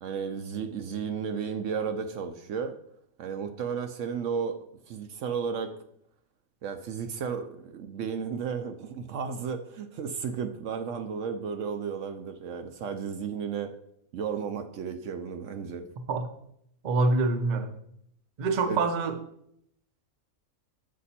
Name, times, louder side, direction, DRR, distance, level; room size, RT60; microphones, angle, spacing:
voice 1, 0.0-2.8 3.2-4.6 4.9-5.7 6.6-13.7 14.1-15.9 18.7-18.8, right 6 dB, 70° right, 0.9 m, -33 dB
voice 2, 16.8-17.7 18.4-19.2, right 3 dB, 45° right, 0.6 m, -25 dB
7.4 x 5.3 x 4.2 m
omnidirectional pair, 1.5 m